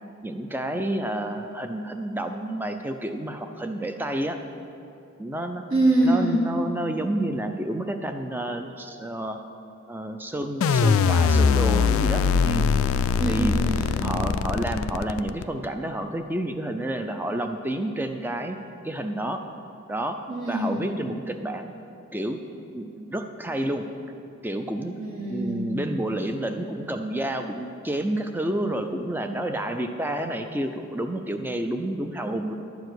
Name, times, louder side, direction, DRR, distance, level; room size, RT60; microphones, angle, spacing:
voice 1, 0.2-4.4 5.2-5.6 6.0-9.4 9.9-12.7 13.3-13.6 14.0-18.6 18.8-19.4 19.9-20.2 20.5-21.7 22.1-22.4 22.7-23.8 24.4-25.0 25.3-32.5, right 1 dB, 10° right, 6 dB, 0.4 m, -29 dB
voice 2, 5.7-6.4 13.2-14.2 20.3-20.8 25.0-25.8, right 1 dB, 70° right, -4 dB, 2.3 m, -24 dB
sound 1, 10.6-15.7, left 5 dB, 70° left, 0.3 m, -22 dB
11.5 x 4.7 x 7.9 m, 2.7 s
head